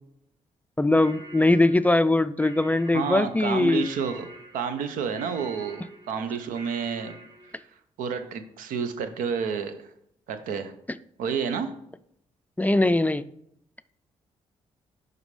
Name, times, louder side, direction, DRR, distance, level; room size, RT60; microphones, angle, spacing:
voice 1, 0.8-3.9 12.6-13.2, left 2 dB, 10° left, 13 dB, 0.3 m, -21 dB
sound 1, 1.0-7.6, right 1 dB, 30° right, 3.0 m, -47 dB
voice 2, 2.9-4.3 4.5-5.8 6.1-7.2 7.6-7.7 8.0-9.9 10.3-10.7 11.2-11.7, right 6 dB, 80° right, 10 dB, 0.7 m, -29 dB
10.5 x 3.9 x 3.3 m, 0.74 s
supercardioid pair, 50°, 14 cm